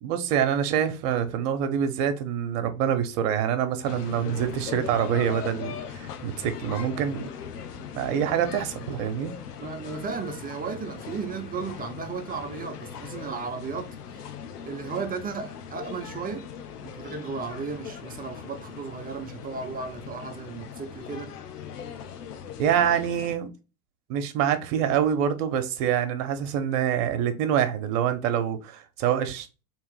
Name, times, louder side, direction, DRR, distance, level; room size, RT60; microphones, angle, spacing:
voice 1, 0.0-7.3 7.9-9.3 22.6-23.5 24.1-29.6, right 9 dB, 55° right, 1.0 m, -26 dB
sound 1, 3.8-23.3, left 8 dB, 85° left, 0.7 m, -40 dB
voice 2, 9.6-14.2 14.7-16.5 16.8-21.3, right 5 dB, 20° right, 0.8 m, -35 dB
3.4 x 3.0 x 3.3 m
hypercardioid pair, 90°, 46 cm